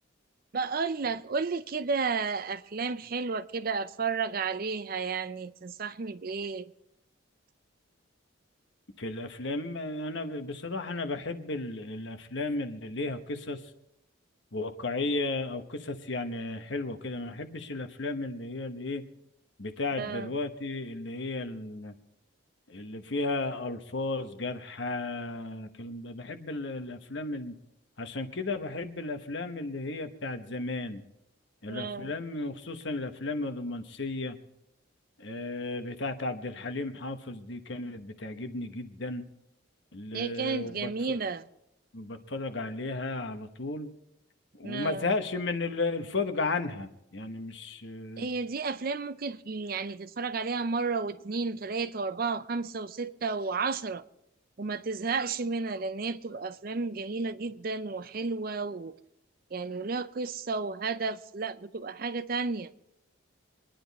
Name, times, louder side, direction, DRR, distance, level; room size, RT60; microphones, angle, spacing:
voice 1, 0.5-6.7 20.0-20.3 31.7-32.1 40.1-41.5 44.6-45.1 48.2-54.0 54.6-59.0 59.5-62.7, right 4 dB, 45° right, 0.5 m, -32 dB
voice 2, 9.0-13.6 14.5-19.0 19.6-21.9 22.7-27.6 28.0-31.0 31.6-34.4 35.2-39.2 39.9-41.2 41.9-43.9 44.5-48.3, left 2 dB, 60° left, 1.1 m, -34 dB
24.0 x 10.5 x 4.1 m
head